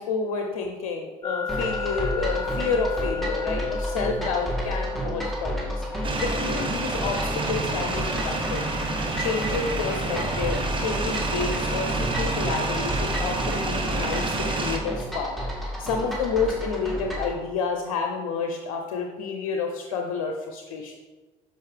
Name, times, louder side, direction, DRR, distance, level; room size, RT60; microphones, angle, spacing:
voice 1, 0.0-14.2 14.5-20.9, left 5 dB, 90° left, 3 dB, 0.6 m, -30 dB
sound 1, 1.2-14.1, left 4 dB, 25° left, 0.4 m, -36 dB
sound 2, 1.5-17.3, equal, ahead, 2.0 m, -31 dB
sound 3, 6.0-14.8, right 3 dB, 25° right, 1.1 m, -29 dB
6.7 x 5.0 x 3.3 m, 1.3 s
supercardioid pair, 70°, 19 cm